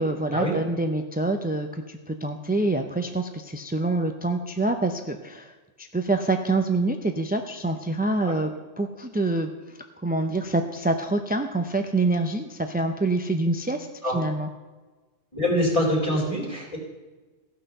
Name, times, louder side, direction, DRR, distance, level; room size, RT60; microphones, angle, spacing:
voice 1, 0.0-14.5, right 2 dB, 15° right, 6 dB, 0.3 m, -26 dB
voice 2, 15.3-16.8, left 1 dB, 25° left, -3 dB, 3.6 m, -24 dB
15.0 x 6.1 x 6.6 m, 1.3 s
omnidirectional pair, 1.2 m